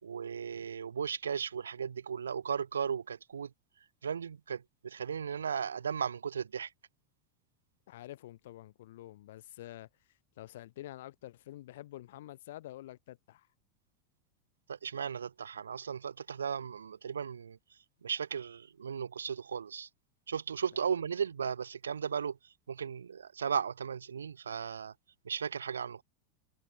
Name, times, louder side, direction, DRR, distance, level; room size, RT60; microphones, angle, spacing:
voice 1, 0.0-3.5 4.0-6.7 14.7-19.9 20.3-24.9 25.2-26.0, right 7 dB, 85° right, 2.7 m, -36 dB
voice 2, 7.9-9.9 10.4-13.5, left 14 dB, 70° left, 5.1 m, -48 dB
hypercardioid pair, 95°, 0 cm